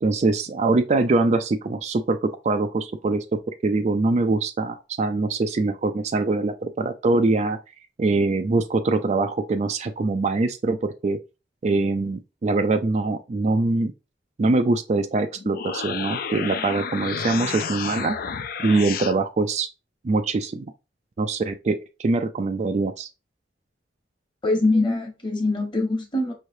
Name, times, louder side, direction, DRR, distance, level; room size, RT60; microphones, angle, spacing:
voice 1, 0.0-7.6 8.0-11.2 11.6-13.9 14.4-18.2 18.6-19.7 20.0-20.6 21.2-23.1, right 3 dB, 40° right, 0.4 m, -23 dB
sound 1, 15.4-19.2, left 6 dB, 50° left, 0.4 m, -31 dB
voice 2, 24.4-26.3, left 2 dB, 25° left, 1.2 m, -23 dB
5.5 x 3.2 x 2.6 m
head